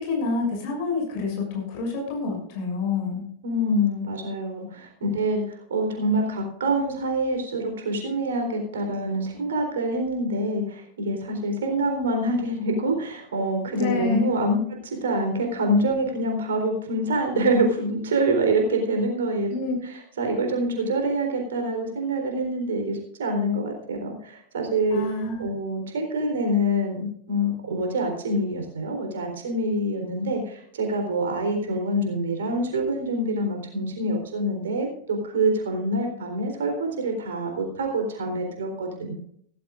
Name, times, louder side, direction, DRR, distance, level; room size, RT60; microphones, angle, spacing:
voice 1, 0.0-3.3 13.8-14.3 19.5-19.7 24.9-25.4, left 3 dB, 50° left, 1 dB, 6.5 m, -28 dB
voice 2, 3.4-19.5 19.8-25.0 25.4-39.1, right 1 dB, 65° right, 3 dB, 3.9 m, -26 dB
16.5 x 14.5 x 2.6 m, 0.67 s
figure-of-eight pair, 90°, 0 cm